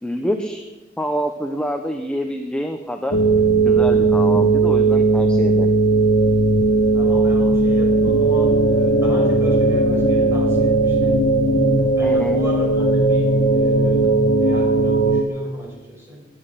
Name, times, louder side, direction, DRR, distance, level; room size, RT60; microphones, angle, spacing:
voice 1, 0.0-0.6 1.0-3.2 3.6-5.7 12.0-12.4, equal, 5° left, 4 dB, 0.9 m, -26 dB
sound 1, 3.1-15.2, right 2 dB, 50° left, 1.3 m, -17 dB
voice 2, 6.9-11.2 12.0-14.1 14.4-16.2, equal, 15° right, -2 dB, 5.7 m, -34 dB
20.5 x 10.0 x 5.8 m, 1.1 s
head